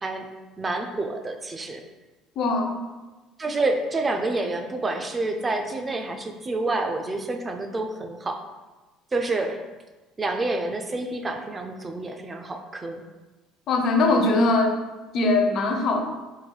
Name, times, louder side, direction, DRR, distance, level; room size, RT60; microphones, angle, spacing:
voice 1, 0.6-1.8 3.4-8.4 9.1-9.6 10.2-13.0, right 2 dB, 20° right, 5 dB, 0.3 m, -28 dB
voice 2, 2.4-2.8 13.7-14.8 15.1-16.0, left 2 dB, 50° left, 4 dB, 0.5 m, -21 dB
3.7 x 2.3 x 3.1 m, 1.2 s
cardioid pair, 135°, 0 cm